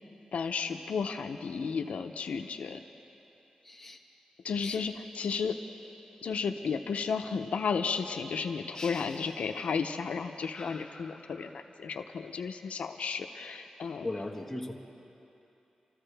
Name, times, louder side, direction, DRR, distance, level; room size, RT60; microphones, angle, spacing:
voice 1, 0.3-2.8 4.4-5.6 6.2-14.1, left 5 dB, 90° left, 6 dB, 0.6 m, -33 dB
voice 2, 3.6-4.0 4.6-4.8 14.0-14.7, left 2 dB, 5° left, -2 dB, 1.5 m, -37 dB
sound 1, 8.7-10.1 10.5-11.8, left 3 dB, 40° left, 1.0 m, -47 dB
27.0 x 14.0 x 3.4 m, 2.9 s
wide cardioid pair, 95°, 2 cm